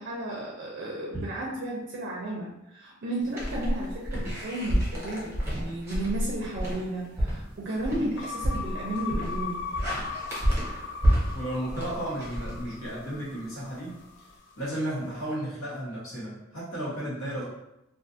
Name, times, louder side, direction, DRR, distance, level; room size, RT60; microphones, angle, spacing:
voice 1, 0.0-9.6, right 1 dB, 50° right, -3 dB, 0.4 m, -33 dB
sound 1, 3.3-13.2, equal, 10° right, 0.7 m, -30 dB
sound 2, 8.2-14.5, left 5 dB, 60° left, 0.3 m, -38 dB
voice 2, 11.3-14.0 14.5-17.4, right 1 dB, 90° left, -7 dB, 1.1 m, -33 dB
2.4 x 2.4 x 2.5 m, 0.88 s
head